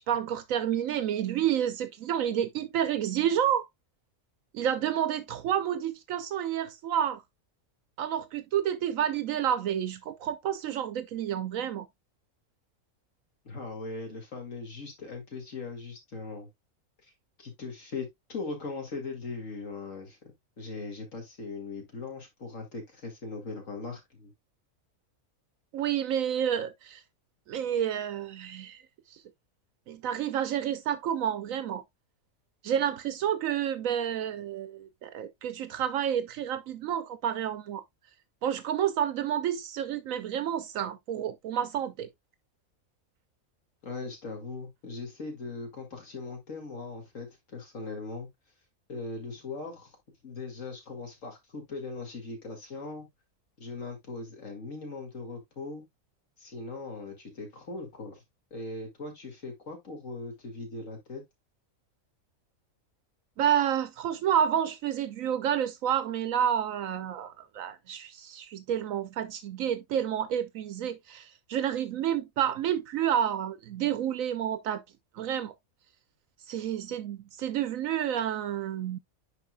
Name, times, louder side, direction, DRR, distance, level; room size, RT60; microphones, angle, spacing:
voice 1, 0.1-3.7 4.5-7.2 8.0-11.9 25.7-27.0 27.5-28.8 29.1-29.2 29.9-31.8 32.6-37.8 38.4-42.1 63.4-74.8 75.1-75.5 76.5-79.0, right 9 dB, 75° right, 1.0 m, -29 dB
voice 2, 13.4-16.5 17.0-17.1 17.4-20.2 20.6-24.3 43.8-48.3 48.9-50.0 50.2-53.1 53.6-55.8 56.4-58.2 58.5-61.2, left 3 dB, 65° left, 2.5 m, -39 dB
10.5 x 4.3 x 2.3 m
omnidirectional pair, 1.4 m